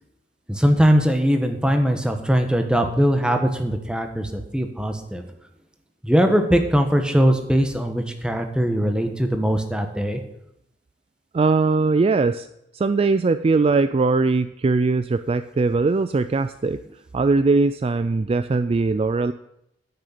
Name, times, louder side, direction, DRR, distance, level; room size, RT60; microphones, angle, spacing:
voice 1, 0.5-5.2 6.0-10.2, equal, 5° right, 5 dB, 1.2 m, -20 dB
voice 2, 11.3-12.5 12.7-16.8 17.1-19.3, right 3 dB, 30° right, 12 dB, 0.3 m, -20 dB
10.5 x 6.4 x 8.6 m, 0.81 s
head